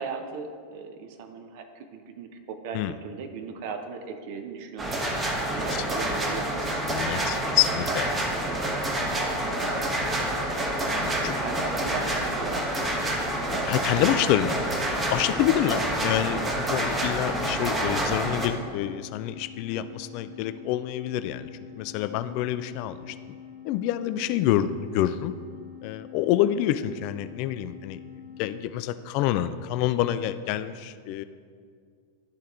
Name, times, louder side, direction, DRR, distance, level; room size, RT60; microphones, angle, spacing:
voice 1, 0.0-6.8 11.4-13.2 15.7-15.8 23.0-23.2, right 5 dB, 50° right, 6 dB, 0.7 m, -38 dB
sound 1, 4.8-18.5, right 1 dB, 15° right, 0.9 m, -28 dB
voice 2, 6.9-8.6 11.0-11.4 13.0-13.2 13.5-14.7 15.1-21.5 21.8-23.2 23.6-25.3 25.8-28.0 28.4-31.2, left 12 dB, 45° left, 13 dB, 0.3 m, -27 dB
sound 2, 9.0-28.6, left 9 dB, 75° left, 1.2 m, -46 dB
11.5 x 4.2 x 3.6 m, 2.1 s
figure-of-eight pair, 90°, 0 cm